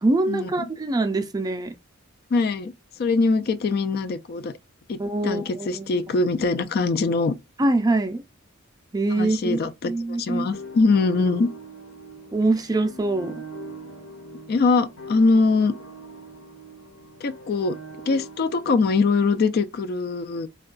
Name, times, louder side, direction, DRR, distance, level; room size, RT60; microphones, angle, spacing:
voice 1, 0.0-1.7 5.0-6.0 7.6-8.2 8.9-10.5 12.3-13.3, right 2 dB, 20° right, 0.4 m, -24 dB
voice 2, 2.3-2.7 3.0-4.5 4.9-7.3 9.1-11.5 14.5-15.7 17.2-17.8 18.1-20.5, left 3 dB, 50° left, 0.3 m, -22 dB
sound 1, 10.5-19.4, right 1 dB, 80° left, 1.1 m, -42 dB
4.4 x 2.2 x 2.4 m
head